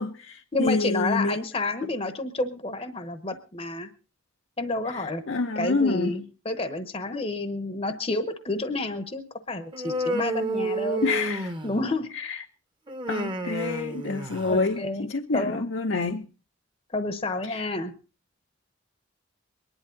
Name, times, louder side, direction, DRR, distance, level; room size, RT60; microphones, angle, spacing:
voice 1, 0.0-1.3 4.9-6.2 11.0-11.5 12.1-12.4 13.1-16.3 17.5-17.7, left 3 dB, 75° left, 0.8 m, -27 dB
voice 2, 0.5-3.9 4.6-5.2 5.6-11.0 11.6-12.1 14.4-15.1 15.3-15.7 16.9-17.9, left 2 dB, 30° left, 0.9 m, -30 dB
Human voice, 9.7-12.0 12.9-14.7, right 1 dB, 25° right, 1.0 m, -30 dB
23.0 x 11.0 x 3.8 m
head